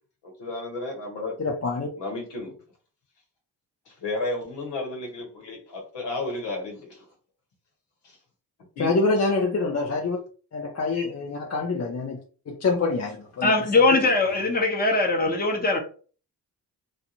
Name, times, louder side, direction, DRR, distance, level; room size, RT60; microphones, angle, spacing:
voice 1, 0.2-1.4 2.0-2.5 3.9-7.0 8.0-8.2 8.8-8.9 10.9-11.0, left 2 dB, 70° left, 1.2 m, -33 dB
voice 2, 1.4-1.9 8.8-10.2 10.5-12.2 12.5-13.5, left 3 dB, 35° left, 0.6 m, -25 dB
voice 3, 13.4-15.8, left 3 dB, 20° left, 1.0 m, -21 dB
2.5 x 2.2 x 2.9 m
supercardioid pair, 50°, 44 cm